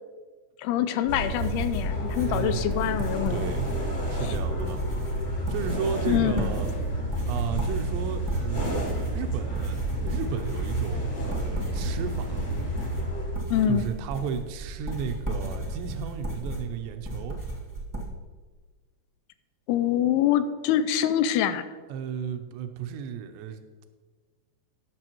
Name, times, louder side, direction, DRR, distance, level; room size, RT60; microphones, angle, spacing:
voice 1, 0.6-3.5 6.1-6.5 13.5-13.9 19.7-21.6, left 10 dB, 80° left, 11 dB, 2.4 m, -25 dB
sound 1, 1.1-13.4, right 1 dB, 30° left, 1.9 m, -30 dB
sound 2, 1.1-18.1, right 1 dB, 20° right, 0.4 m, -35 dB
voice 2, 2.2-3.7 4.1-4.8 5.5-6.7 7.3-12.4 13.7-17.4 21.9-23.9, right 7 dB, 85° right, 7 dB, 3.0 m, -34 dB
20.0 x 6.9 x 3.0 m, 1.4 s
omnidirectional pair, 4.9 m